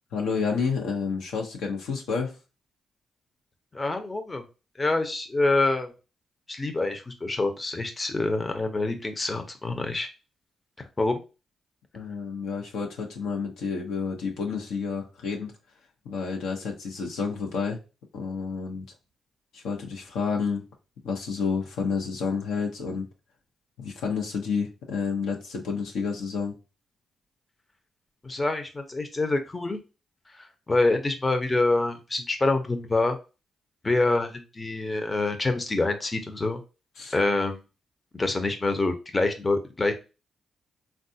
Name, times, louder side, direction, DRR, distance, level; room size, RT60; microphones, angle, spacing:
voice 1, 0.1-2.3 11.9-15.5 16.0-17.8 18.1-18.9 19.5-20.6 21.0-23.1 23.8-26.5 37.0-37.1, left 5 dB, 85° left, 0 dB, 0.8 m, -30 dB
voice 2, 3.7-4.4 4.8-5.9 6.5-10.1 11.0-11.2 28.2-29.8 30.4-33.2 33.8-36.6 37.1-37.6 38.1-39.9, left 2 dB, 25° left, 6 dB, 0.6 m, -26 dB
3.6 x 2.3 x 2.7 m, 0.31 s
supercardioid pair, 60°, 0 cm